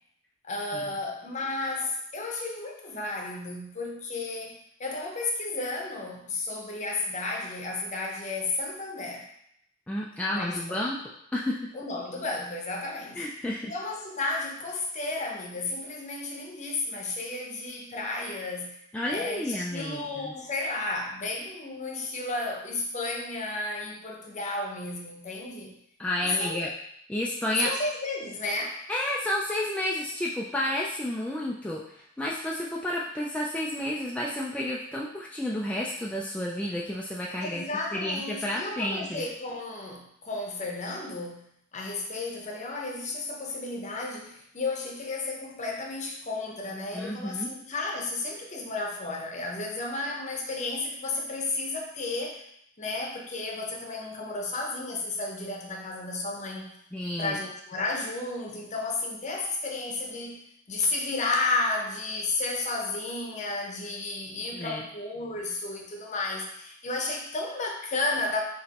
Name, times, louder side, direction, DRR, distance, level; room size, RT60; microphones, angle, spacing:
voice 1, 0.4-9.3 10.3-10.6 11.7-13.3 13.7-18.8 19.1-25.7 26.2-26.7 27.6-28.8 37.4-52.4 52.8-56.7 57.2-68.4, left 2 dB, 40° left, 0 dB, 0.7 m, -33 dB
voice 2, 9.9-11.7 13.2-13.7 18.9-20.4 26.0-26.7 27.1-27.7 28.9-37.6 37.9-39.3 46.9-47.5 56.9-57.4 64.5-64.9, left 1 dB, 5° left, -4 dB, 0.3 m, -31 dB
5.0 x 3.0 x 2.9 m, 0.72 s
head